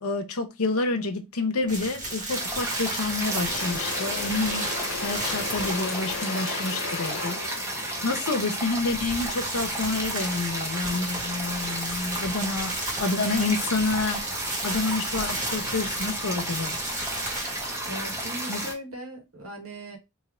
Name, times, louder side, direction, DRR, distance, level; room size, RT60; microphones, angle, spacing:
voice 1, 0.0-4.7 5.0-14.2 14.6-16.8 18.5-18.6, left 3 dB, 90° left, 0.8 m, -29 dB
sound 1, 1.7-6.2 8.6-18.2, right 2 dB, 40° right, 1.7 m, -35 dB
sound 2, 2.3-18.7, right 1 dB, 15° right, 0.8 m, -32 dB
Engine / Drill, 2.5-2.8 3.1-9.2, left 6 dB, 65° left, 0.5 m, -36 dB
voice 2, 17.9-20.0, right 1 dB, 80° right, 1.5 m, -38 dB
3.3 x 2.8 x 3.7 m
head